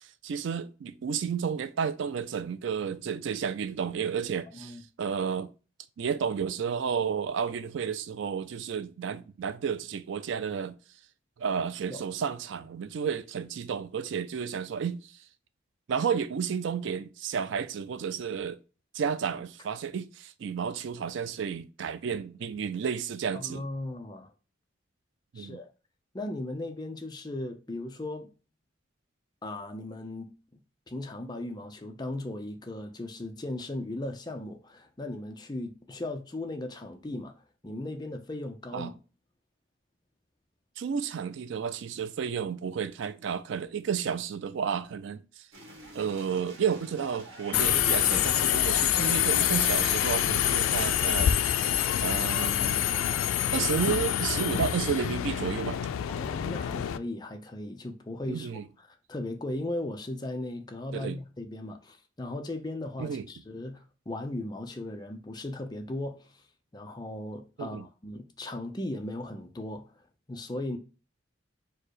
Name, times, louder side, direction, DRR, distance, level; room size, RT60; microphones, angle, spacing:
voice 1, 0.0-5.5 6.0-10.8 11.4-15.1 15.9-18.6 18.9-23.6 25.3-25.6 38.7-38.9 40.8-45.4 45.9-51.3 52.0-53.0 53.5-55.8 58.3-58.6 60.9-61.2 63.0-63.3 67.6-67.9, right 7 dB, 65° right, 0.3 m, -32 dB
voice 2, 23.3-24.3 25.4-25.7 26.1-28.3 29.4-30.6 30.9-37.3 37.6-39.0 56.1-58.5 58.8-66.3 66.7-69.9 70.3-70.8, left 1 dB, 20° left, 0.5 m, -37 dB
sound 1, 45.5-53.9, right 2 dB, 85° right, 1.4 m, -46 dB
Subway metro underground, 47.5-57.0, left 11 dB, 90° left, 0.3 m, -26 dB
4.5 x 2.1 x 4.7 m
head